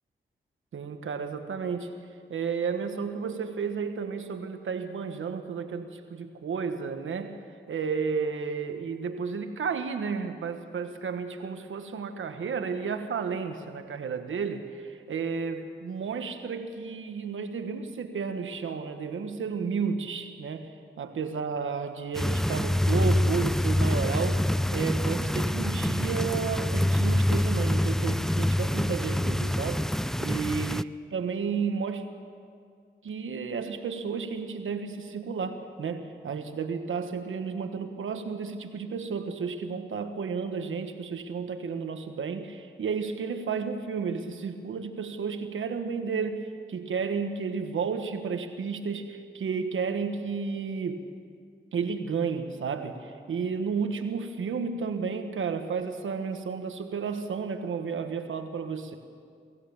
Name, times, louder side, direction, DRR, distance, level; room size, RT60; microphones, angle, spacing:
voice 1, 0.7-1.9 2.3-7.3 7.7-20.7 21.0-24.4 24.7-32.0 33.0-51.1 51.7-59.0, right 5 dB, 90° right, 7 dB, 1.4 m, -32 dB
sound 1, 22.1-30.8, left 1 dB, ahead, 0.5 m, -26 dB
24.0 x 15.5 x 7.1 m, 2.2 s
cardioid pair, 45°, 20 cm